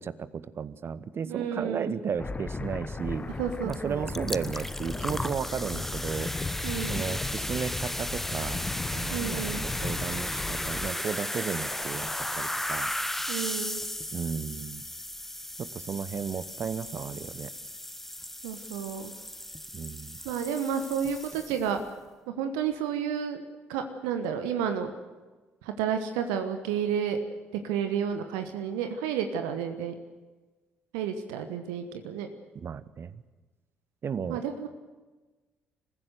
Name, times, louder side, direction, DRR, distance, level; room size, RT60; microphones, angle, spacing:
voice 1, 0.0-3.3 3.6-6.3 6.9-8.6 8.9-12.9 14.1-14.8 15.6-17.5 19.7-20.2 32.5-33.2 34.0-34.4, right 6 dB, 40° right, 17 dB, 1.0 m, -34 dB
voice 2, 1.3-1.9 3.4-4.1 6.6-7.0 9.1-9.6 13.3-13.8 18.4-19.1 20.2-21.8 22.4-23.4 23.7-24.9 25.6-27.2 27.6-29.9 30.9-32.3 34.3-34.7, right 8 dB, 70° right, 8 dB, 1.2 m, -31 dB
sound 1, 2.2-10.9, left 3 dB, 25° left, 1.1 m, -36 dB
sound 2, 3.7-3.8 4.1-21.8, left 1 dB, 5° left, 0.6 m, -35 dB
26.0 x 15.0 x 7.8 m, 1.2 s
figure-of-eight pair, 45°, 6 cm